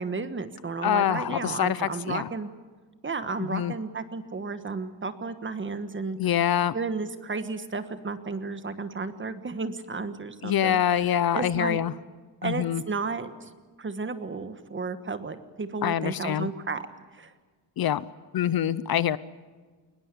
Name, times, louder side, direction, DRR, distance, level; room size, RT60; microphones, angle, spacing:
voice 1, 0.0-2.5 3.0-6.2 6.7-11.8 12.4-13.5 13.8-16.9 17.1-17.3, right 4 dB, 25° right, 11 dB, 1.3 m, -33 dB
voice 2, 0.8-2.3 3.5-3.7 6.2-6.7 10.4-11.9 12.4-12.8 15.8-16.5 17.8-18.0 18.3-19.2, left 10 dB, 55° left, 17 dB, 0.7 m, -25 dB
21.5 x 20.5 x 8.4 m, 1.4 s
wide cardioid pair, 175°, 45 cm